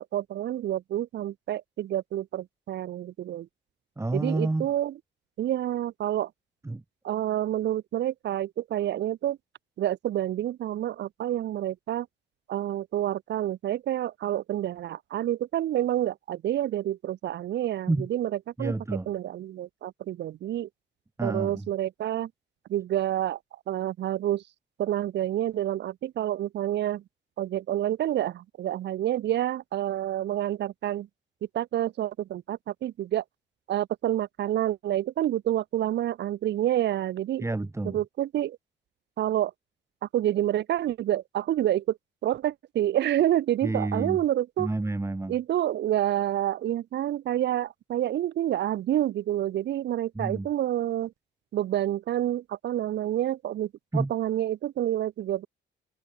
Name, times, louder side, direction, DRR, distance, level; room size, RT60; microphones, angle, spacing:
voice 1, 0.0-3.5 4.1-4.9 5.4-6.3 7.0-9.4 9.8-12.1 12.5-18.3 18.6-18.7 19.1-20.7 21.2-22.3 22.7-23.4 23.7-24.4 24.8-27.0 27.4-31.1 31.5-33.2 33.7-37.4 37.9-38.6 39.2-39.5 40.0-42.0 42.2-44.7 45.3-51.1 51.5-55.5, right 12 dB, 60° right, 0.6 m, -28 dB
voice 2, 4.0-4.7 6.6-6.8 17.9-18.1 18.6-19.1 21.2-21.7 37.4-38.0 43.6-44.2 44.6-45.3 50.2-50.5 53.9-54.1, right 2 dB, 15° right, 1.9 m, -29 dB
cardioid pair, 90°, 20 cm